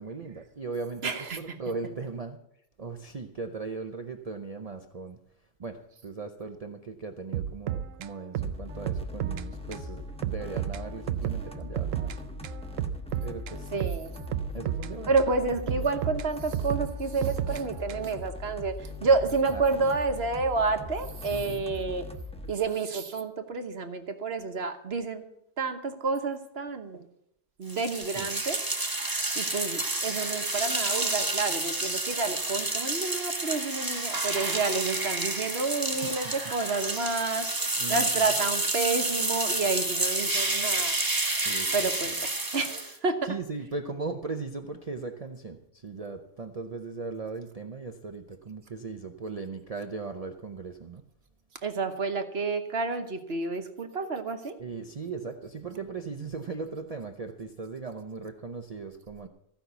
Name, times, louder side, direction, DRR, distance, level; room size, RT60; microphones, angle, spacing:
voice 1, 0.0-1.1 1.4-2.4 2.8-5.2 5.6-12.1 13.2-13.7 14.5-15.1 21.3-21.7 28.2-28.3 37.8-38.0 41.5-41.7 43.3-45.6 45.8-51.0 54.6-59.3, right 4 dB, 35° right, 0.6 m, -38 dB
voice 2, 1.0-1.6 13.7-14.1 15.1-22.0 22.5-25.2 25.6-27.0 27.6-28.6 29.3-41.0 41.7-43.4 51.6-54.6, right 4 dB, 55° right, 1.3 m, -29 dB
sound 1, 7.3-9.5 9.7-9.9 10.2-12.2 12.4-15.3 15.7-18.2, right 10 dB, 80° right, 1.0 m, -33 dB
sound 2, 8.4-22.5, left 2 dB, 5° left, 1.0 m, -40 dB
sound 3, 27.7-43.0, right 2 dB, 15° right, 1.3 m, -29 dB
15.0 x 5.8 x 8.0 m
omnidirectional pair, 1.3 m